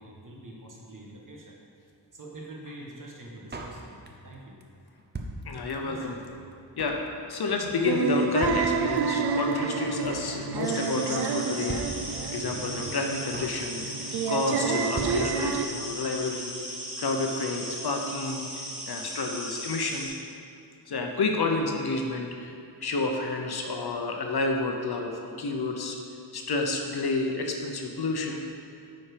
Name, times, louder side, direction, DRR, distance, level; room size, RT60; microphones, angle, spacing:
voice 1, 0.0-1.6 2.1-4.6 5.8-6.4 12.4-12.7, right 1 dB, 50° right, -2 dB, 1.3 m, -45 dB
Drum kit, 3.5-4.3 4.6-4.7 4.9-6.0 6.2-6.3 6.5-7.1 7.3-7.6 7.9-8.0 8.1-8.2 8.4-9.2 9.5-9.6 9.8-10.3 10.6-10.9 11.1-11.2 11.4-11.5 11.7-12.5 12.8-12.9 13.1-13.6 13.9-14.2 14.4-14.5 14.7-14.8 15.0-15.8 16.1-16.2 16.3-16.4, right 2 dB, 25° right, 0.6 m, -39 dB
voice 2, 5.5-6.1 6.8-7.0 7.3-16.6 17.0-20.1 20.9-22.5 22.8-26.0 26.3-28.4, left 3 dB, 65° left, 2 dB, 0.9 m, -30 dB
sound 1, 7.8-15.6, right 5 dB, 65° right, 0.5 m, -29 dB
sound 2, 10.6-20.1, equal, ahead, 1.9 m, -37 dB
9.2 x 4.4 x 5.1 m, 2.6 s
wide cardioid pair, 170°, 42 cm